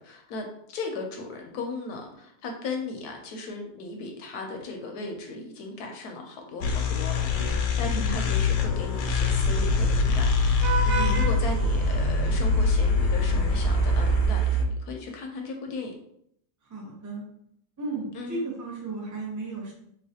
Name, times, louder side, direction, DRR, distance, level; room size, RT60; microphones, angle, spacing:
voice 1, 0.0-15.9 18.1-18.4, left 3 dB, 70° left, 3 dB, 1.1 m, -36 dB
sound 1, 6.6-14.6, left 5 dB, 90° left, 1.2 m, -25 dB
Vehicle horn car horn honking / Traffic noise roadway noise, 8.9-14.3, right 3 dB, 80° right, 1.1 m, -26 dB
voice 2, 16.7-17.2 17.8-19.7, right 3 dB, 25° right, -2 dB, 0.4 m, -34 dB
3.7 x 3.1 x 2.8 m, 0.72 s
omnidirectional pair, 1.8 m